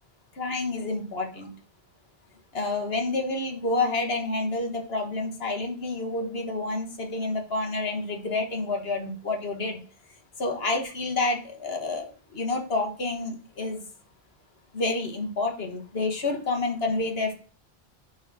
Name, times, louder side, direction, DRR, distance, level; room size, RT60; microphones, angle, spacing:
voice 1, 0.4-1.5 2.5-9.8 10.4-13.8 14.7-17.3, left 3 dB, 75° left, 3 dB, 1.7 m, -29 dB
6.4 x 4.1 x 6.1 m, 0.38 s
omnidirectional pair, 1.0 m